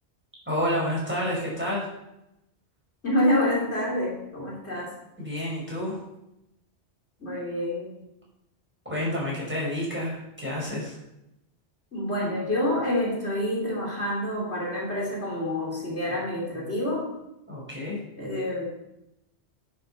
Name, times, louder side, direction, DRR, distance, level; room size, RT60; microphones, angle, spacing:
voice 1, 0.5-1.9 5.2-6.0 8.9-11.0 17.5-18.0, left 1 dB, 10° right, -5 dB, 5.2 m, -29 dB
voice 2, 3.0-4.9 7.2-7.9 11.9-17.1 18.2-18.6, left 1 dB, 70° left, -4 dB, 3.6 m, -27 dB
10.0 x 7.8 x 5.7 m, 0.87 s
omnidirectional pair, 1.2 m